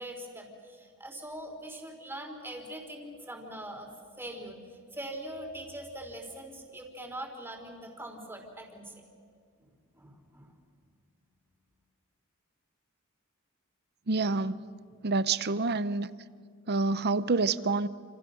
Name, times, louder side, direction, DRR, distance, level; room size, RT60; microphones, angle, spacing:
voice 1, 0.0-3.9 4.2-4.6 4.9-9.0 9.9-10.5, right 1 dB, 10° right, 3 dB, 3.7 m, -42 dB
voice 2, 14.1-14.6 15.0-16.1 16.7-17.9, right 3 dB, 50° right, 15 dB, 0.8 m, -27 dB
29.0 x 27.0 x 6.4 m, 2.1 s
head